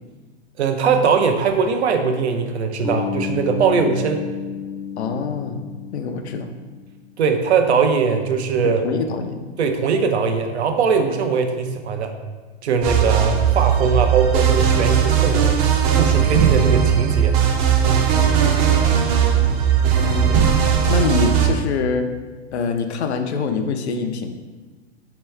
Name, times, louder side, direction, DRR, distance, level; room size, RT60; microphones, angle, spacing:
voice 1, 0.6-4.2 7.2-8.8 9.6-12.1 12.6-15.6 15.9-17.3 17.9-18.1, right 5 dB, 85° right, 6 dB, 0.6 m, -20 dB
Bass guitar, 2.8-6.9, left 7 dB, 10° left, 0.5 m, -31 dB
voice 2, 5.0-5.6 5.9-6.5 8.6-9.4 20.0-20.4 20.9-22.1 22.5-24.3, left 5 dB, 85° left, 6 dB, 0.6 m, -24 dB
sound 1, 12.8-21.5, right 8 dB, 35° right, 0.5 m, -17 dB
4.5 x 3.0 x 3.2 m, 1.3 s
hypercardioid pair, 125°, 32 cm